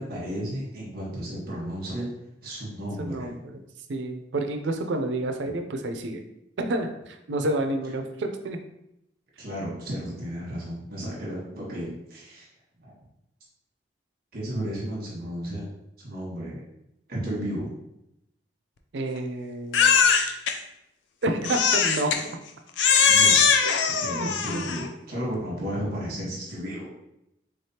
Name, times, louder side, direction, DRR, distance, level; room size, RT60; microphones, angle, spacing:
voice 1, 0.0-2.1 2.4-3.4 9.4-12.5 12.8-12.9 14.3-15.6 16.0-16.6 17.1-17.7 23.1-23.4 24.0-26.9, equal, 55° right, -5 dB, 1.2 m, -33 dB
voice 2, 3.0-3.6 3.9-6.2 6.6-8.6 18.9-20.0 21.2-22.1 23.6-23.8 24.0-24.7, right 2 dB, 75° right, 6 dB, 0.5 m, -29 dB
Crying sobbing, 19.7-20.5 21.4-22.2 22.8-24.9, left 6 dB, 80° left, 0.4 m, -21 dB
3.5 x 3.3 x 2.8 m, 0.83 s
head